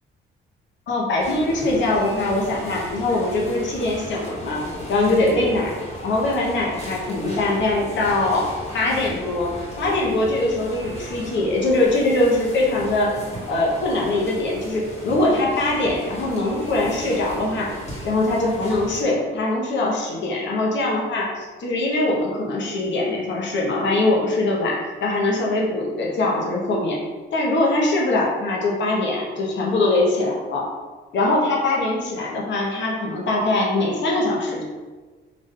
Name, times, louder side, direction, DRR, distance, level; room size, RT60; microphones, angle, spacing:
voice 1, 0.9-4.6 4.9-5.8 6.0-8.5 8.7-13.1 13.5-17.7 18.0-27.0 27.3-30.7 31.1-34.6, left 2 dB, 65° left, -2 dB, 1.0 m, -22 dB
sound 1, 1.2-19.0, equal, 30° left, 1.4 m, -36 dB
3.9 x 2.6 x 3.6 m, 1.3 s
cardioid pair, 90°, 20 cm